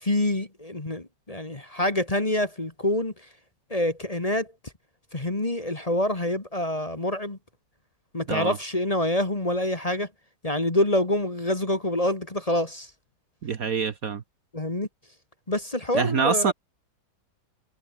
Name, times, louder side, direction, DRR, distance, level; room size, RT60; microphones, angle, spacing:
voice 1, 0.0-3.1 3.7-4.5 5.1-7.4 8.1-10.1 10.4-12.9 14.5-14.9 15.5-16.5, left 1 dB, 20° left, 1.9 m, -26 dB
voice 2, 13.4-14.2 15.9-16.5, right 6 dB, 55° right, 1.5 m, -25 dB
omnidirectional pair, 2.0 m